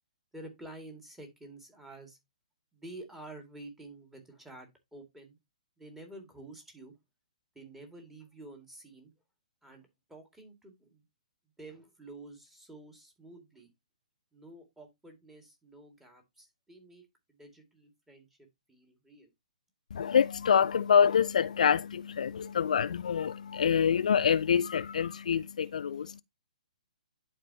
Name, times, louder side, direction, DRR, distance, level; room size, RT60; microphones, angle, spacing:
voice 1, 0.3-2.2 2.7-5.4 5.8-7.0 7.5-9.1 9.6-11.0 11.6-13.7 14.3-19.3, right 2 dB, 5° right, 2.0 m, -50 dB
voice 2, 19.9-26.2, left 7 dB, 70° left, 0.4 m, -26 dB
11.0 x 4.3 x 2.7 m
hypercardioid pair, 145°, 4 cm